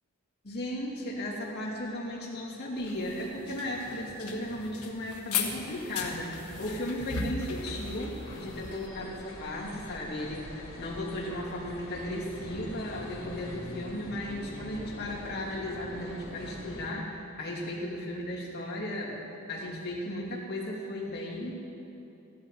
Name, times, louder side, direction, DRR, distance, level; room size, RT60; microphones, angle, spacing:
voice 1, 0.4-19.2 19.5-21.5, left 1 dB, 45° left, -5 dB, 2.6 m, -35 dB
sound 1, 2.8-8.9, left 5 dB, 85° left, 1.3 m, -37 dB
sound 2, 7.5-16.9, left 1 dB, 65° left, 3.2 m, -44 dB
15.5 x 11.5 x 4.5 m, 2.9 s
head